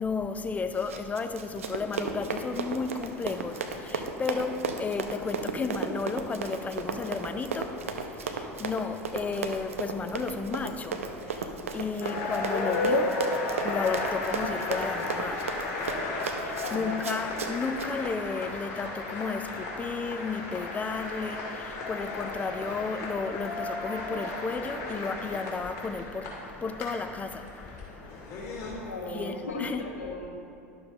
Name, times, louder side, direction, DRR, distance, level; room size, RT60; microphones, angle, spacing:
voice 1, 0.0-7.7 8.2-11.0 11.3-13.1 13.6-15.5 16.3-26.3 26.6-27.5 29.1-29.8, left 4 dB, 20° left, 0.5 m, -33 dB
Run, 0.7-17.9, right 5 dB, 85° right, 0.6 m, -35 dB
sound 1, 12.0-28.7, left 2 dB, 50° left, 2.0 m, -34 dB
voice 2, 16.4-17.0 28.7-30.3, left 2 dB, 90° left, 1.2 m, -37 dB
11.0 x 6.9 x 3.2 m
hypercardioid pair, 85°, 7 cm